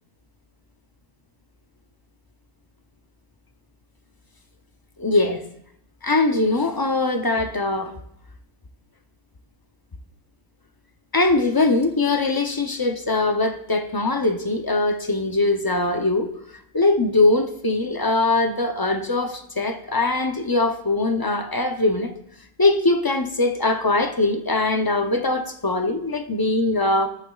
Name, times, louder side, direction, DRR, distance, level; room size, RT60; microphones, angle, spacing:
voice 1, 5.0-5.4 6.0-7.9 11.1-16.3 16.7-22.1 22.6-27.1, left 2 dB, 30° left, 6 dB, 0.4 m, -21 dB
13.5 x 8.3 x 2.3 m, 0.77 s
omnidirectional pair, 1.2 m